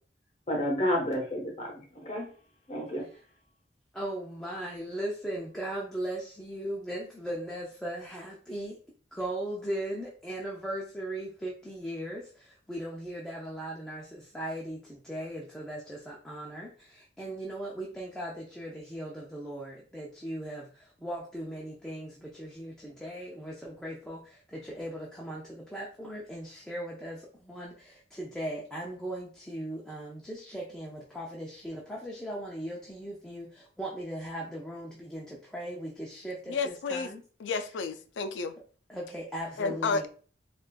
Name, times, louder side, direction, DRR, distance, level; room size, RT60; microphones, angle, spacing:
voice 1, 0.5-2.3 2.7-3.1, equal, 35° left, 1.0 m, -30 dB
voice 2, 3.9-8.8 9.1-37.2 38.9-40.1, right 1 dB, 5° left, 0.5 m, -38 dB
voice 3, 36.5-37.1 37.4-38.5 39.6-40.1, left 4 dB, 85° left, 0.4 m, -31 dB
4.1 x 2.5 x 2.2 m
head